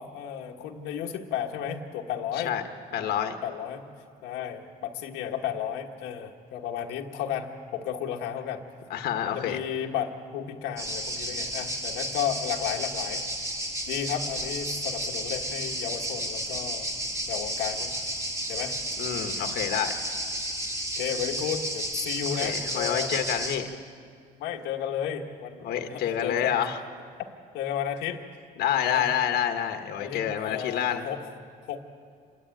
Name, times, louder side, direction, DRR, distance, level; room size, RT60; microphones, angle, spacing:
voice 1, 0.0-2.5 2.9-3.1 3.4-3.8 4.2-8.6 9.3-13.2 13.9-16.9 17.3-17.9 18.5-18.7 20.9-23.1 23.6-23.7 24.4-26.6 27.5-28.2 28.8-29.1 30.0-31.4 31.7-31.8, left 9 dB, 90° left, 1 dB, 1.4 m, -33 dB
voice 2, 2.9-3.3 8.9-9.6 19.0-20.0 22.4-23.7 25.6-26.8 28.6-31.0, left 9 dB, 70° left, 6 dB, 1.4 m, -28 dB
sound 1, 10.8-23.6, right 1 dB, 20° right, 3.1 m, -32 dB
27.5 x 12.0 x 8.9 m, 2.2 s
cardioid pair, 110°, 17 cm